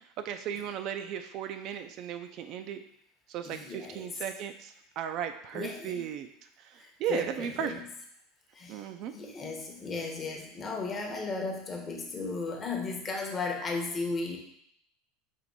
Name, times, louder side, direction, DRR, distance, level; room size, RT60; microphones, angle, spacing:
voice 1, 0.2-2.8 3.3-6.3 7.0-7.8 8.7-9.1, right 9 dB, 50° right, 8 dB, 0.3 m, -36 dB
voice 2, 3.4-4.1 5.5-6.1 6.8-7.9 8.5-8.8 9.1-14.4, left 3 dB, 25° left, 2 dB, 0.8 m, -35 dB
4.5 x 2.5 x 4.0 m, 0.72 s
supercardioid pair, 135°, 0 cm